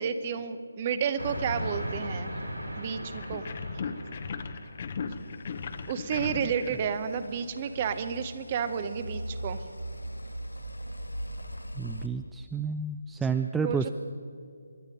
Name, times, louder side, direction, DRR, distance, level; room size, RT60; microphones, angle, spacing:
voice 1, 0.0-2.3 2.8-3.4 5.9-9.6 13.6-13.9, right 7 dB, 25° right, 12 dB, 0.8 m, -31 dB
Train, 1.2-5.1, equal, 90° right, 2.9 m, -37 dB
sound 1, 3.1-7.7, left 5 dB, 35° left, 0.9 m, -37 dB
sound 2, 5.1-12.1, right 1 dB, 85° left, 1.2 m, -40 dB
voice 2, 11.8-13.9, right 5 dB, 5° right, 8 dB, 0.3 m, -30 dB
24.5 x 10.5 x 5.2 m, 2.3 s
figure-of-eight pair, 150°, 0 cm